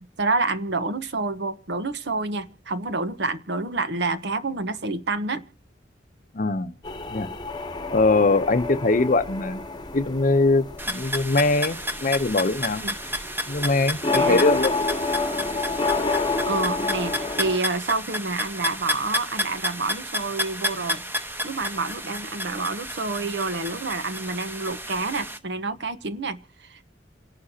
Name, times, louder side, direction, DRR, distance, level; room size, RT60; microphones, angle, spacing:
voice 1, 0.2-5.5 12.8-12.9 14.1-14.4 16.5-21.1 21.4-26.8, right 3 dB, 65° right, 1.0 m, -28 dB
voice 2, 6.3-6.7 7.1-7.3 7.9-9.6 9.9-12.8 13.5-14.7, left 3 dB, 45° left, 0.7 m, -22 dB
sound 1, 6.8-17.6, left 3 dB, 25° left, 1.1 m, -29 dB
sound 2, 10.8-25.4, equal, 10° right, 1.0 m, -31 dB
29.0 x 11.5 x 2.8 m
head